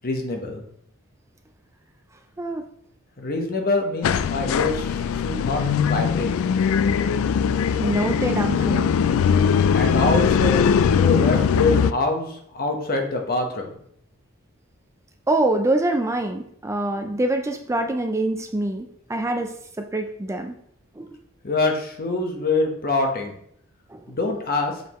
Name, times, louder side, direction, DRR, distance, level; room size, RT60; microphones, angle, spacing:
voice 1, 0.0-0.6 3.2-6.3 9.7-10.7 11.0-13.7 21.4-23.3 24.1-24.8, left 3 dB, 45° left, 2 dB, 1.1 m, -25 dB
sound 1, 4.0-11.9, left 7 dB, 70° left, 0.3 m, -20 dB
voice 2, 7.8-9.6 15.3-20.6 21.0-21.2 23.9-24.1, right 1 dB, 15° right, 5 dB, 0.4 m, -25 dB
6.6 x 5.2 x 3.0 m, 0.69 s
head